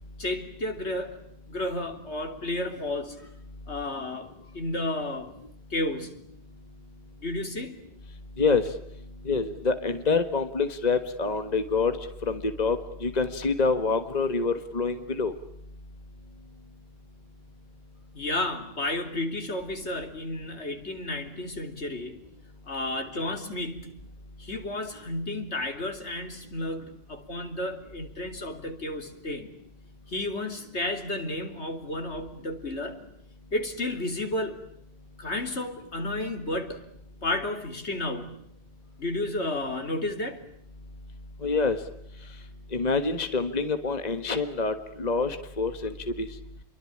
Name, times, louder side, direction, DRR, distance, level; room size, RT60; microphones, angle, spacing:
voice 1, 0.2-1.2 1.5-3.3 3.7-5.3 5.7-6.2 7.2-7.8 18.1-22.2 22.7-24.1 24.4-29.5 30.1-33.0 33.5-34.6 35.2-36.8 37.2-38.4 39.0-40.4, left 1 dB, 80° left, 6 dB, 3.5 m, -32 dB
voice 2, 8.4-8.7 9.2-12.0 12.3-15.3 41.4-41.8 42.7-46.3, left 4 dB, 40° left, 9 dB, 1.6 m, -26 dB
29.0 x 23.5 x 8.7 m, 0.74 s
omnidirectional pair, 1.1 m